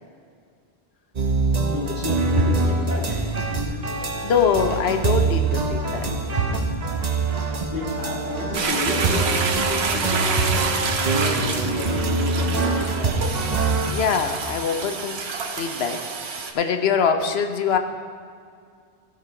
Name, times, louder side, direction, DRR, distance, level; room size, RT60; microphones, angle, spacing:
sound 1, 1.2-13.9, right 3 dB, 45° right, 0.9 m, -24 dB
voice 1, 1.7-3.8 4.1-4.3 7.7-10.7 11.1-13.2, left 2 dB, 55° left, -5 dB, 2.6 m, -31 dB
voice 2, 4.2-6.1 13.9-15.2 15.6-17.8, left 6 dB, 80° left, 7 dB, 1.0 m, -23 dB
Toilet flush, 8.5-16.5, right 5 dB, 85° right, 1.1 m, -28 dB
15.0 x 5.0 x 5.7 m, 2.2 s
omnidirectional pair, 1.0 m